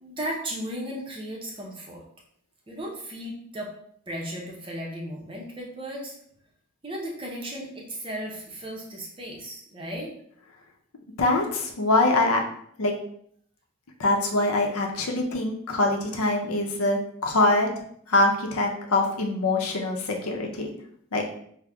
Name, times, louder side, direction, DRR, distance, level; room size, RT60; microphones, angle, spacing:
voice 1, 0.0-2.0 2.7-3.7 4.1-6.1 6.8-10.1, equal, 25° right, -2 dB, 0.6 m, -35 dB
voice 2, 11.2-12.4 12.8-12.9 14.0-17.7 18.1-20.7 21.1-21.2, left 2 dB, 90° left, 1 dB, 0.6 m, -24 dB
5.0 x 2.1 x 2.3 m, 0.65 s
head